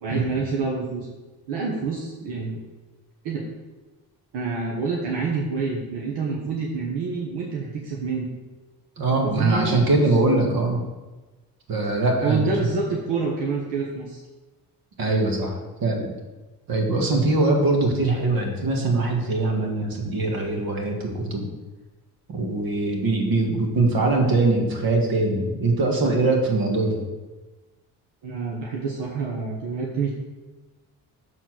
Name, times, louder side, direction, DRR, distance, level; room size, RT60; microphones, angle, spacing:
voice 1, 0.0-1.1 1.5-2.6 3.2-3.4 4.3-8.3 9.2-10.1 12.2-14.2 28.2-30.1, right 4 dB, 80° right, -2 dB, 1.3 m, -27 dB
voice 2, 9.0-10.8 11.7-12.4 15.0-16.1 16.7-21.5 22.3-27.0, right 2 dB, 60° right, 1 dB, 1.9 m, -22 dB
6.6 x 4.4 x 6.2 m, 1.2 s
cardioid pair, 85°, 40 cm